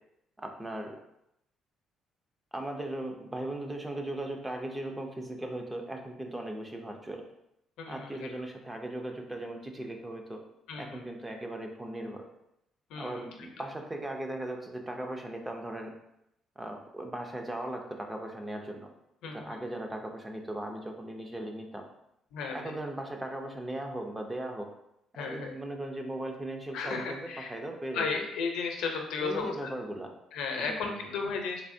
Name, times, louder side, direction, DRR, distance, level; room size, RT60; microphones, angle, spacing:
voice 1, 0.4-0.9 2.5-7.2 7.9-10.4 10.8-12.2 13.0-15.9 16.6-18.9 19.3-21.8 22.5-24.7 25.2-28.2 29.2-30.1 30.6-31.1, right 1 dB, 10° right, 3 dB, 0.4 m, -38 dB
voice 2, 7.8-8.3 10.7-11.0 12.9-13.3 19.2-19.6 22.3-22.7 25.1-25.5 26.7-27.5 27.9-29.7 30.3-31.6, left 4 dB, 80° left, 3 dB, 0.6 m, -34 dB
3.4 x 3.2 x 2.6 m, 0.80 s
cardioid pair, 155°, 0 cm